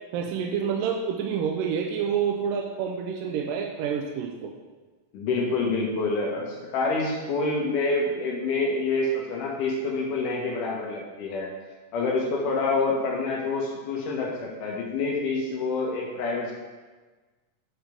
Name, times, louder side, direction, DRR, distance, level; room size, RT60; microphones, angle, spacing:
voice 1, 0.1-4.5, right 7 dB, 80° right, 1 dB, 2.3 m, -28 dB
voice 2, 5.1-11.5 11.9-16.5, left 3 dB, 70° left, -2 dB, 2.5 m, -27 dB
8.1 x 5.0 x 5.1 m, 1.3 s
omnidirectional pair, 4.0 m